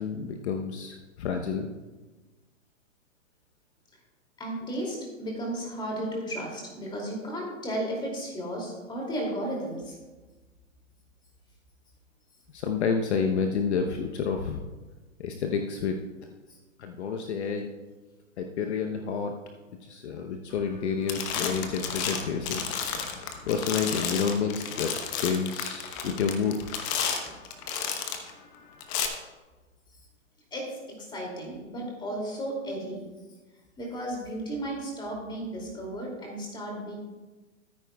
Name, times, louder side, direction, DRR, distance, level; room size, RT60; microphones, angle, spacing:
voice 1, 0.0-1.7 12.5-14.6 15.2-16.0 16.8-17.7 18.4-19.4 19.8-22.7 23.5-26.5, left 6 dB, 55° left, 4 dB, 0.9 m, -29 dB
voice 2, 4.4-10.0 16.5-16.6 22.9-23.0 26.0-26.2 30.5-33.1 33.8-37.0, right 1 dB, 10° left, -1 dB, 2.6 m, -34 dB
sound 1, 20.6-20.8 21.1-28.3 28.8-29.1, left 7 dB, 25° left, 0.9 m, -32 dB
13.5 x 9.3 x 2.3 m, 1.2 s
hypercardioid pair, 135°, 41 cm